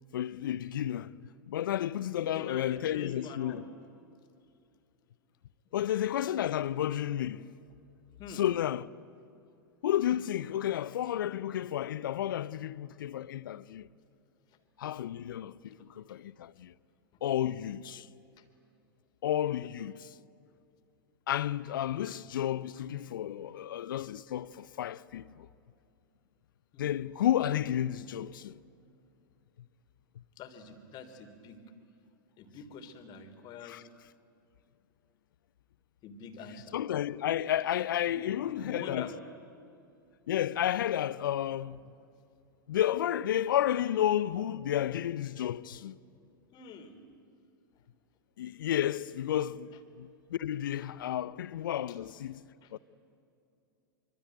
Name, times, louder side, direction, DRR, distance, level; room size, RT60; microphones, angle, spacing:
voice 1, 0.1-1.2 1.5-3.7 5.7-7.5 8.3-8.9 9.8-13.9 14.8-16.7 17.2-18.1 19.2-20.1 21.3-25.5 26.8-28.6 33.6-33.8 36.7-39.1 40.3-41.8 42.7-46.0 48.4-52.4 52.7-52.8, left 11 dB, 65° left, 0.8 m, -32 dB
voice 2, 2.1-3.7 8.2-8.4 15.8-15.9 18.0-18.1 18.4-18.5 19.6-19.7 26.7-26.9 30.4-31.6 32.4-33.9 36.0-36.7 38.1-39.1 46.5-47.0 51.9-52.0 52.6-52.7, left 5 dB, 35° left, 3.3 m, -45 dB
25.5 x 24.5 x 9.4 m
figure-of-eight pair, 100°, 12 cm